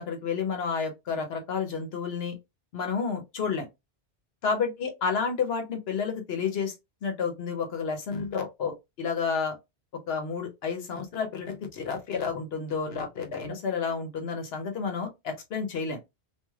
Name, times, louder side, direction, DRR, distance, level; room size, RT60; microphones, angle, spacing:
voice 1, 0.0-2.4 2.7-3.7 4.4-6.7 7.0-9.6 10.1-16.0, left 5 dB, 70° left, 1.0 m, -30 dB
3.1 x 2.5 x 2.3 m
omnidirectional pair, 1.1 m